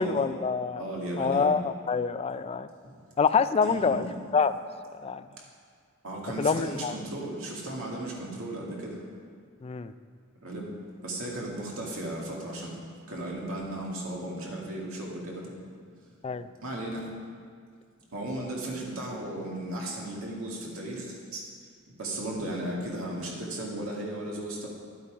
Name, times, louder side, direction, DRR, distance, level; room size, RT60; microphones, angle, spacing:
voice 1, 0.0-0.8 1.2-2.7 3.2-4.1 4.3-4.5 5.0-5.2 6.4-6.9 9.6-9.9 16.2-16.5, left 5 dB, 30° left, 12 dB, 0.3 m, -26 dB
voice 2, 0.7-1.5 3.6-4.1 6.0-9.0 10.4-10.7 11.0-12.7 13.1-15.5 16.6-17.0 18.1-21.1 21.3-21.4 22.0-24.7, right 1 dB, 70° right, -3 dB, 2.3 m, -35 dB
11.0 x 8.4 x 5.1 m, 2.1 s
head